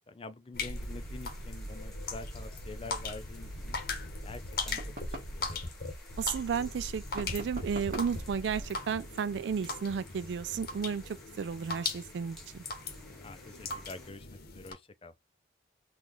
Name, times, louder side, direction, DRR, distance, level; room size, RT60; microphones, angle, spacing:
voice 1, 0.1-3.8 4.2-5.6 13.2-15.1, left 3 dB, 30° left, 0.5 m, -47 dB
sound 1, 0.5-14.7, left 3 dB, 55° left, 0.9 m, -39 dB
sound 2, 0.7-14.1, left 1 dB, ahead, 1.2 m, -55 dB
sound 3, 4.8-5.4 7.1-8.2, equal, 50° right, 1.1 m, -43 dB
voice 2, 6.2-12.6, right 6 dB, 75° right, 0.4 m, -33 dB
3.8 x 2.4 x 3.0 m
head